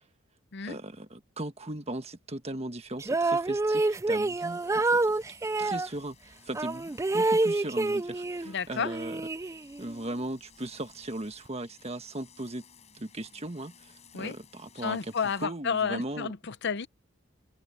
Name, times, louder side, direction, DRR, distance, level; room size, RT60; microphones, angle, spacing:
voice 1, 0.6-5.0 5.6-6.2 6.4-12.6 12.9-15.1 15.4-16.3, right 1 dB, 30° right, 1.5 m, -38 dB
sound 1, 3.0-5.9 6.6-8.5 8.9-9.9, right 2 dB, 15° right, 0.3 m, -27 dB
sound 2, 4.4-15.5, left 6 dB, 35° left, 6.0 m, -58 dB
voice 2, 8.4-8.9 14.1-14.3 14.8-16.9, left 6 dB, 60° left, 0.7 m, -31 dB
head